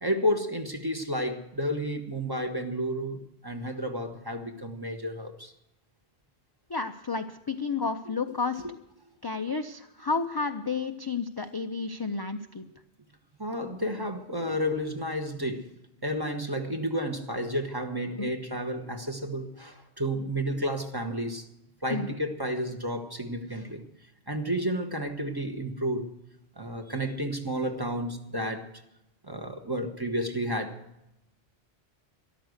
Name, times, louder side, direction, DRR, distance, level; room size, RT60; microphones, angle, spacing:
voice 1, 0.0-5.5 13.4-15.7 16.0-21.5 21.8-23.8 24.3-26.1 26.6-28.7 29.2-30.8, equal, 20° right, 1.2 m, -31 dB
voice 2, 6.7-8.6 9.2-12.6 18.2-18.3 21.9-22.1, left 4 dB, 30° left, 0.4 m, -31 dB
13.5 x 12.0 x 6.5 m
omnidirectional pair, 1.1 m